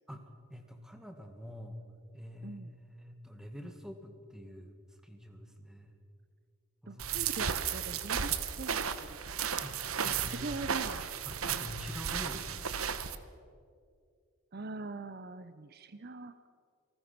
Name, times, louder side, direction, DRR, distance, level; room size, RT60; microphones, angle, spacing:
voice 1, 0.1-1.8 2.1-4.7 5.0-6.0 6.8-7.3 9.6-10.5 11.3-12.7, equal, 5° right, 5 dB, 1.9 m, -46 dB
voice 2, 6.9-8.8 9.1-9.2 10.0-11.1 11.4-11.8 14.5-16.5, right 3 dB, 45° right, 12 dB, 0.6 m, -43 dB
sound 1, 7.0-13.2, right 7 dB, 75° right, 1.1 m, -34 dB
28.0 x 19.5 x 6.0 m, 2.3 s
head